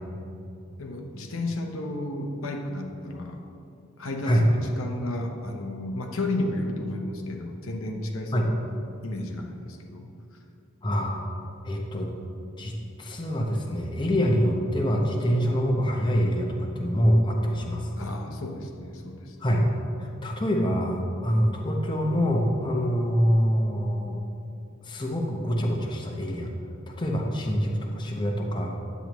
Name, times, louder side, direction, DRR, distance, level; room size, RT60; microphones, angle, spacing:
voice 1, 0.8-3.4 4.0-8.7 9.0-10.1 18.0-19.4, left 1 dB, 80° left, 2 dB, 0.9 m, -33 dB
voice 2, 10.8-11.2 11.6-12.1 12.6-17.9 19.4-19.7 20.0-24.2 24.8-26.5 27.0-28.8, equal, 25° left, 0 dB, 0.8 m, -25 dB
10.0 x 8.2 x 3.0 m, 2.6 s
head